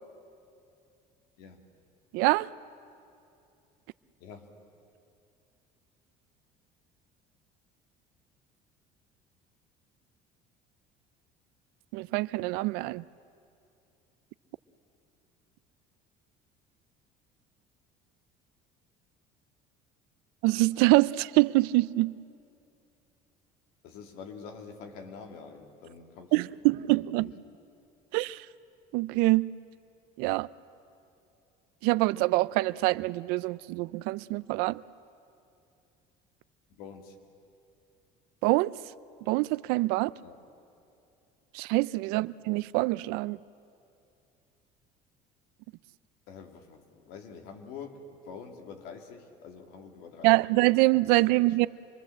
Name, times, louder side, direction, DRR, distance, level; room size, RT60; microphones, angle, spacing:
voice 1, 2.1-2.5 11.9-13.0 20.4-22.1 26.3-27.3 28.1-28.5 28.9-29.5 30.2-30.5 31.8-34.8 38.4-38.7 39.3-40.1 41.5-43.4 50.2-51.7, right 21 dB, 80° right, 18 dB, 0.5 m, -25 dB
voice 2, 23.8-27.5 36.7-37.2 40.2-40.4 42.1-42.2 46.3-50.5 51.3-51.7, left 5 dB, 75° left, 4 dB, 2.5 m, -46 dB
26.0 x 22.5 x 7.7 m, 2.6 s
cardioid pair, 180°, 16 cm